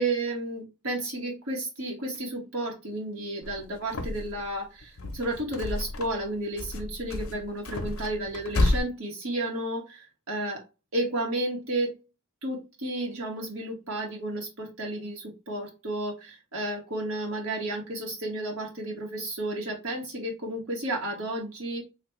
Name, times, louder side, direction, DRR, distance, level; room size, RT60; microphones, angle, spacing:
voice 1, 0.0-10.6 10.9-11.9 12.4-21.8, right 1 dB, 70° right, 1.1 m, -32 dB
sound 1, 3.4-4.5 4.8-6.3 6.6-8.8, left 2 dB, 70° left, 0.7 m, -30 dB
3.3 x 2.3 x 3.1 m
head